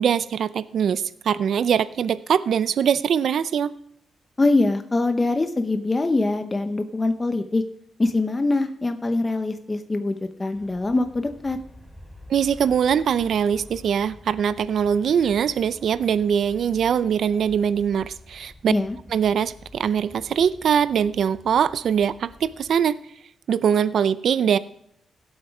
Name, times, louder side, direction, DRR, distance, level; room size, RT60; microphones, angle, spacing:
voice 1, 0.0-3.7 12.3-18.7 19.1-23.0 23.5-24.6, right 8 dB, 70° right, 14 dB, 0.5 m, -22 dB
voice 2, 4.4-7.6 8.0-11.6 18.7-19.0, left 2 dB, 20° left, 7 dB, 0.8 m, -23 dB
Aircraft, 10.5-22.7, left 1 dB, 5° left, 4.5 m, -48 dB
17.0 x 8.0 x 4.8 m, 0.70 s
cardioid pair, 115°, 0 cm